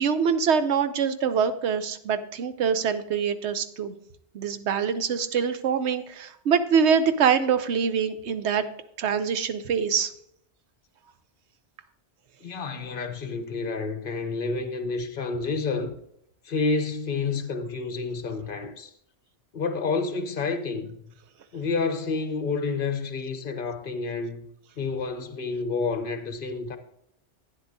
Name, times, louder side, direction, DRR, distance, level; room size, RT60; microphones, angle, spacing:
voice 1, 0.0-3.9 4.3-8.6 9.0-10.1, right 7 dB, 80° right, 1.0 m, -24 dB
voice 2, 12.4-15.9 16.4-18.9 19.5-21.1 21.5-24.4 24.8-26.8, left 4 dB, 55° left, 1.0 m, -29 dB
11.5 x 9.2 x 2.7 m
omnidirectional pair, 1.1 m